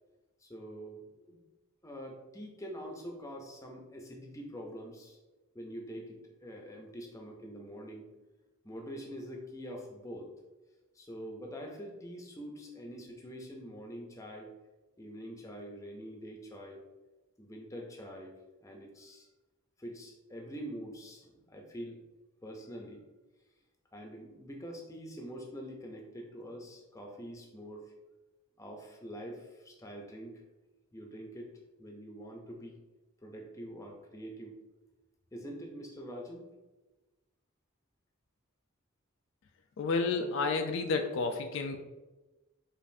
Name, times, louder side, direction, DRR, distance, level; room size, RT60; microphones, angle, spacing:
voice 1, 0.4-1.4 1.8-5.2 5.5-8.1 8.6-10.3 10.9-14.5 15.0-16.8 17.4-18.3 18.6-19.3 19.8-22.0 22.4-23.0 23.9-27.9 28.6-30.4 30.9-31.5 31.8-32.8 33.2-34.6 35.3-36.5, equal, 15° left, 1 dB, 0.6 m, -45 dB
voice 2, 39.8-41.8, left 4 dB, 65° left, 5 dB, 0.3 m, -30 dB
5.1 x 2.5 x 2.6 m, 1.1 s
head